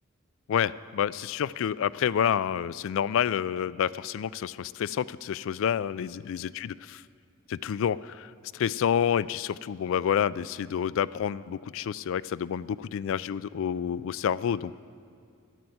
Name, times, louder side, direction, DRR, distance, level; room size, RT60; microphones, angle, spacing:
voice 1, 0.5-6.7 7.5-14.7, left 8 dB, 65° left, 18 dB, 0.3 m, -28 dB
11.0 x 11.0 x 7.9 m, 2.3 s
head